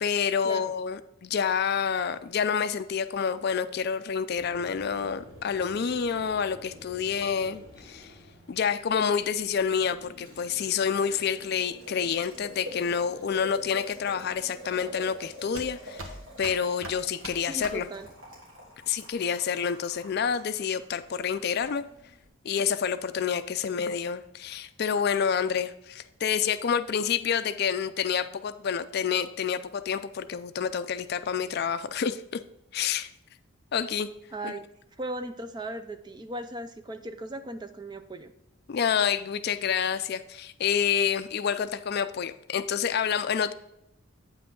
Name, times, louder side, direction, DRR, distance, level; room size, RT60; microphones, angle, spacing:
voice 1, 0.0-8.1 8.5-16.1 16.4-17.9 18.9-21.8 22.4-32.4 32.7-33.1 33.7-34.1 34.4-34.5 38.7-43.5, left 7 dB, 50° left, 12 dB, 0.4 m, -28 dB
Boiling, 4.3-22.3, left 1 dB, 60° right, 3.2 m, -47 dB
sound 1, 12.7-18.5, right 2 dB, 75° right, 1.3 m, -44 dB
voice 2, 17.5-18.1 34.3-34.7 35.0-38.3, right 1 dB, 20° right, 9 dB, 0.4 m, -37 dB
8.5 x 5.8 x 3.8 m, 0.83 s
head